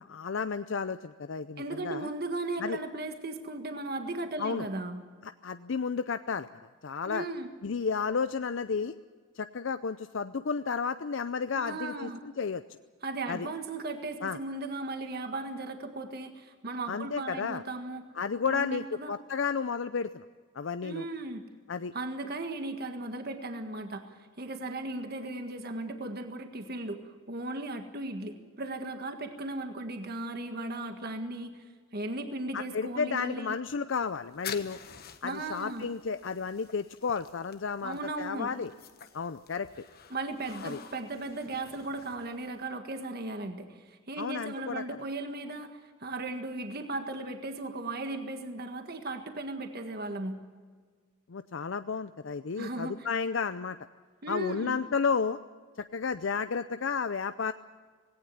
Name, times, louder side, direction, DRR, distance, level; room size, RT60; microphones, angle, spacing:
voice 1, 0.1-2.1 2.6-2.8 4.4-4.7 5.2-6.5 6.8-7.2 7.6-8.9 9.4-12.6 13.3-13.5 14.2-14.4 16.9-17.6 18.2-20.2 20.5-21.0 21.7-21.9 32.5-34.8 35.2-38.7 39.1-39.7 40.6-40.8 44.2-44.8 51.3-53.8 54.3-55.4 55.9-57.5, left 5 dB, 65° left, 11 dB, 0.5 m, -32 dB
voice 2, 1.6-5.0 7.0-7.5 11.5-12.2 13.0-18.0 18.5-19.1 20.8-21.4 21.9-33.5 35.2-35.9 37.8-38.5 40.1-50.4 52.6-53.1 54.2-54.8, right 2 dB, 50° right, 6 dB, 1.6 m, -37 dB
sound 1, 34.0-42.6, left 8 dB, 50° left, 1.2 m, -48 dB
18.5 x 17.5 x 9.6 m, 1.5 s
head